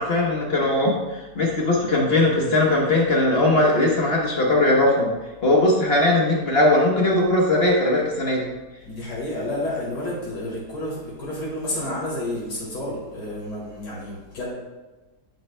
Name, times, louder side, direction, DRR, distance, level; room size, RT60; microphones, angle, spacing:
voice 1, 0.0-5.1 5.4-8.5, left 2 dB, 45° left, -2 dB, 1.1 m, -19 dB
voice 2, 8.8-14.5, left 1 dB, 90° left, -6 dB, 2.4 m, -30 dB
9.0 x 7.6 x 2.2 m, 1.2 s
omnidirectional pair, 1.7 m